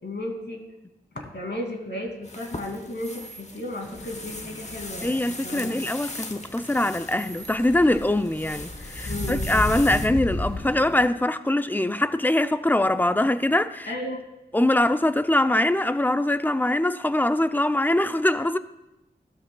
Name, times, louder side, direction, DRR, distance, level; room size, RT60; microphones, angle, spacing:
voice 1, 0.0-0.6 1.1-5.8 9.1-9.5 13.9-14.2, left 1 dB, 65° left, 2.6 m, -34 dB
sound 1, 2.2-10.1, left 2 dB, 35° left, 1.2 m, -40 dB
sound 2, 3.0-3.4 5.0-5.4 7.2-7.6 9.2-9.5, right 4 dB, 75° right, 1.2 m, -44 dB
sound 3, 3.8-11.1, left 1 dB, 80° left, 2.4 m, -35 dB
voice 2, 5.0-13.9 14.5-18.6, left 1 dB, 10° left, 0.6 m, -23 dB
16.5 x 12.0 x 2.3 m
cardioid pair, 45°, 19 cm